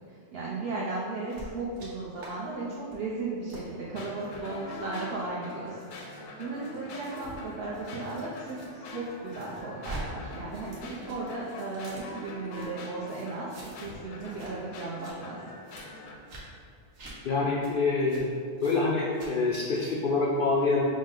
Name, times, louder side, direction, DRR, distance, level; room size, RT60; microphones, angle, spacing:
voice 1, 0.1-15.4, right 3 dB, 60° right, -6 dB, 0.7 m, -36 dB
sound 1, 1.3-1.9 2.2-2.3 2.7-3.0 3.5-3.6 4.2-4.4 5.1-8.7 9.0-10.0 10.3-12.7 13.1-13.9 14.2-14.5 14.8-15.1 15.6-15.8 16.3-16.4 16.9-17.1 17.6-17.7 18.1-18.2 18.6-18.8 19.1-19.9, right 2 dB, 80° right, 1.3 m, -46 dB
sound 2, 3.9-16.2, left 2 dB, 80° left, 0.9 m, -44 dB
voice 2, 17.2-18.3 18.6-20.8, left 3 dB, 65° left, -4 dB, 0.5 m, -26 dB
5.1 x 2.1 x 3.7 m, 2.3 s
omnidirectional pair, 1.3 m